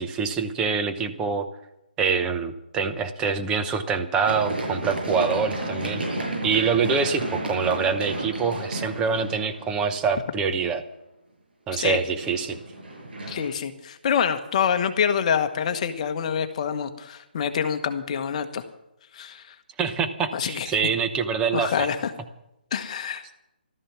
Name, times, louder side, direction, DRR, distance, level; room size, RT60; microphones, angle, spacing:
voice 1, 0.0-1.5 2.0-10.8 11.7-12.6 19.8-21.9, right 5 dB, 15° right, 7 dB, 0.9 m, -25 dB
Run, 4.2-10.1 11.9-13.5, right 2 dB, 75° right, 6.2 m, -32 dB
voice 2, 13.3-18.6 19.1-19.5 20.3-20.7 21.5-22.1 22.7-23.3, left 7 dB, 40° left, 8 dB, 1.2 m, -26 dB
14.0 x 13.0 x 6.1 m, 0.86 s
hypercardioid pair, 150°, 6 cm